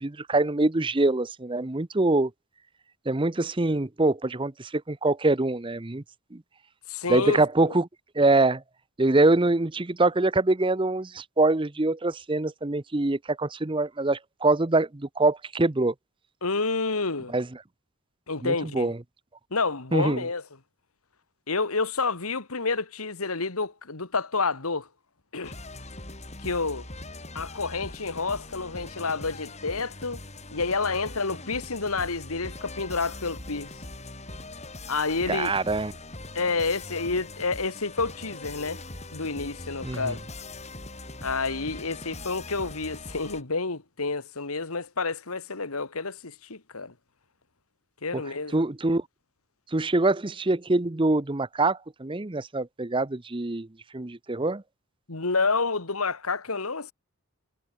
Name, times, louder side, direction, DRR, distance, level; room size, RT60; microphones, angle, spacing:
voice 1, 0.0-2.3 3.1-6.0 6.3-6.4 7.1-7.9 8.2-8.6 9.0-15.9 17.3-17.5 18.4-19.0 19.9-20.2 35.3-35.9 39.8-40.1 48.1-48.2 48.5-49.0 49.7-53.7 53.9-54.6, right 2 dB, 25° right, 0.7 m, -24 dB
voice 2, 6.9-7.4 7.7-7.8 16.4-17.3 18.3-18.9 19.5-20.4 21.5-24.9 25.3-25.6 26.4-26.9 27.3-30.2 30.5-33.7 34.9-35.5 36.3-38.8 39.1-40.2 41.2-46.9 48.0-48.6 55.1-56.9, left 4 dB, 85° left, 2.0 m, -29 dB
sound 1, 25.4-43.4, left 2 dB, 30° left, 7.6 m, -41 dB
head